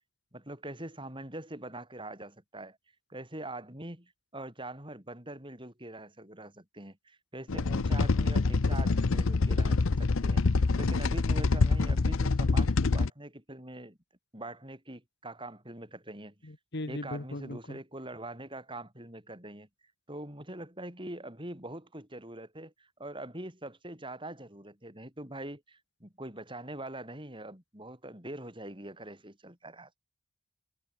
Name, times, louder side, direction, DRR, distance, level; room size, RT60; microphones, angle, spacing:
voice 1, 0.3-2.8 3.1-14.0 14.3-16.3 16.9-19.7 20.1-30.0, right 1 dB, 25° right, 7.0 m, -43 dB
sound 1, 7.5-13.1, left 3 dB, 70° left, 0.7 m, -26 dB
voice 2, 16.4-17.8, left 1 dB, 55° left, 1.5 m, -38 dB
head